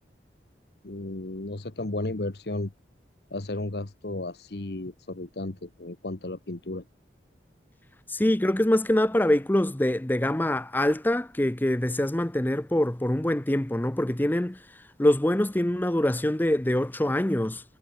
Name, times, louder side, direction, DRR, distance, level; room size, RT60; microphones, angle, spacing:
voice 1, 0.8-2.7 3.3-6.8, left 2 dB, 65° left, 1.3 m, -34 dB
voice 2, 8.1-14.6 15.0-17.6, left 1 dB, 10° left, 0.6 m, -24 dB
head